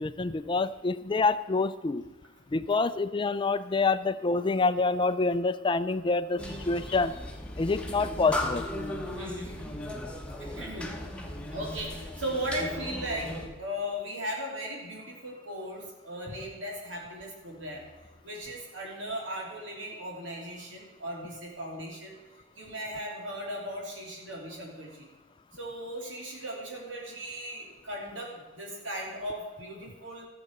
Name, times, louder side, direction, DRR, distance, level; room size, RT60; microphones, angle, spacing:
voice 1, 0.0-2.0 2.5-7.1 7.6-8.7, left 3 dB, 25° left, 13 dB, 0.4 m, -27 dB
sound 1, 6.4-13.5, left 1 dB, 5° left, 1.2 m, -37 dB
voice 2, 9.2-9.6 10.4-11.0 11.5-17.8 18.2-22.1 22.5-25.1 25.5-30.3, equal, 75° right, -2 dB, 3.1 m, -37 dB
13.5 x 7.0 x 6.6 m, 1.2 s
head